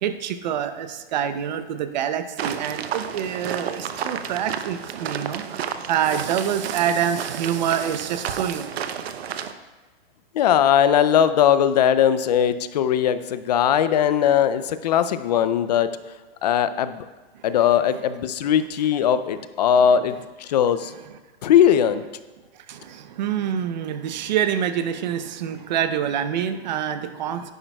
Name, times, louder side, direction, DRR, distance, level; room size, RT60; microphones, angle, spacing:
voice 1, 0.0-8.7 17.3-17.4 21.1-21.2 22.5-27.5, right 9 dB, 45° right, 10 dB, 0.7 m, -26 dB
sound 1, 2.4-9.5, right 8 dB, 80° right, 0.7 m, -32 dB
voice 2, 10.3-15.9 16.4-17.0 17.4-20.9 21.4-22.0, left 9 dB, 40° left, 12 dB, 0.4 m, -19 dB
10.5 x 10.0 x 2.3 m, 1.3 s
hypercardioid pair, 155°, 31 cm